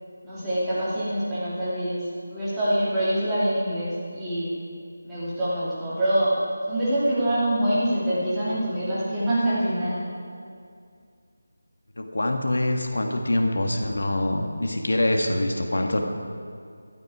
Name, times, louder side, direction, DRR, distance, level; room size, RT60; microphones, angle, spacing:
voice 1, 0.2-4.5 5.0-6.3 6.7-10.0, right 1 dB, 5° right, -13 dB, 2.7 m, -25 dB
voice 2, 12.0-16.0, left 1 dB, 85° left, 4 dB, 1.7 m, -24 dB
13.0 x 12.5 x 4.8 m, 2.3 s
figure-of-eight pair, 175°, 0 cm